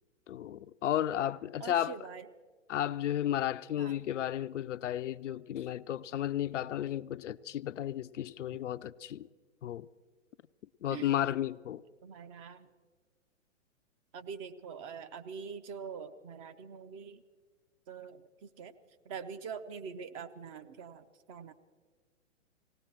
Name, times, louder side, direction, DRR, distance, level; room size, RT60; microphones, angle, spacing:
voice 1, 0.3-1.9 2.7-9.3 9.6-9.9 10.8-11.8, left 11 dB, 65° left, 13 dB, 0.5 m, -33 dB
voice 2, 1.6-2.3 3.8-4.0 10.9-11.1 12.0-12.7 14.1-17.2 17.9-18.7 19.0-21.5, right 6 dB, 25° right, 10 dB, 0.6 m, -44 dB
18.5 x 17.5 x 4.4 m, 1.5 s
figure-of-eight pair, 120°, 39 cm